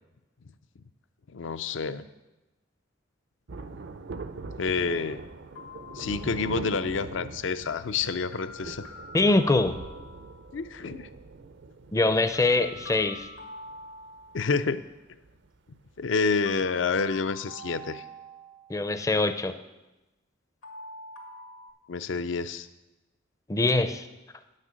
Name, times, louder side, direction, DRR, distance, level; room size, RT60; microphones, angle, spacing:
voice 1, 1.3-2.0 4.6-5.2 5.9-8.9 10.5-11.1 14.3-14.8 16.0-18.0 21.9-22.7, left 4 dB, 65° left, 13 dB, 0.5 m, -28 dB
Thunder, 3.5-15.5 15.7-15.8, right 3 dB, 60° right, 0.5 m, -43 dB
sound 1, 5.6-6.7 8.3-10.6 12.3-14.7 16.5-18.8 20.6-21.7, left 1 dB, 85° left, 2.2 m, -45 dB
voice 2, 9.1-9.8 11.9-13.3 18.7-19.6 23.5-24.0, left 2 dB, 15° left, 10 dB, 0.5 m, -23 dB
9.5 x 6.5 x 7.5 m, 1.0 s
head